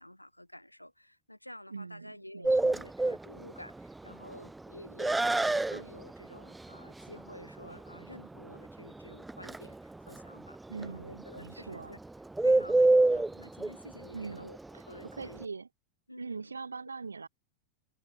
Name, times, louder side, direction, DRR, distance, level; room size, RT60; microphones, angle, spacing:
voice 1, 0.0-12.0 12.4-15.4 16.1-16.5, left 1 dB, 85° left, 6.7 m, -50 dB
voice 2, 1.7-2.9 10.7-12.0 14.1-15.7 16.2-17.3, right 4 dB, 75° right, 3.6 m, -42 dB
Bird, 2.4-15.4, right 2 dB, 5° right, 2.1 m, -29 dB
figure-of-eight pair, 90°, 0 cm